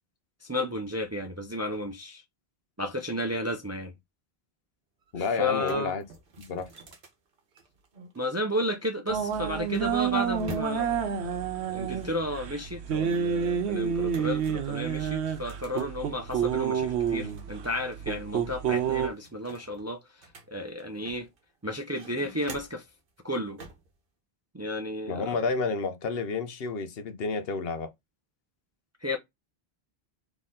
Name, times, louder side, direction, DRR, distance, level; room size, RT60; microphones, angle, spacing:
voice 1, 0.4-2.2 2.8-3.9 5.2-5.9 8.2-11.4 11.7-20.3 20.5-21.3 21.6-22.8 23.2-23.6 24.5-25.4 29.0-29.2, left 1 dB, 20° right, 0.5 m, -33 dB
sound 1, 5.0-5.1 5.4-8.2 9.1-11.1 11.9-13.5 14.1-16.5 16.9-18.0 18.3-18.4 18.8-21.4 21.8-22.9 23.6-23.9, right 3 dB, 60° right, 1.1 m, -48 dB
voice 2, 5.1-6.0 6.4-6.7 25.1-27.9, left 4 dB, 70° left, 0.9 m, -30 dB
sound 2, 9.1-19.1, right 7 dB, 85° right, 1.0 m, -29 dB
4.2 x 3.0 x 3.7 m
omnidirectional pair, 1.1 m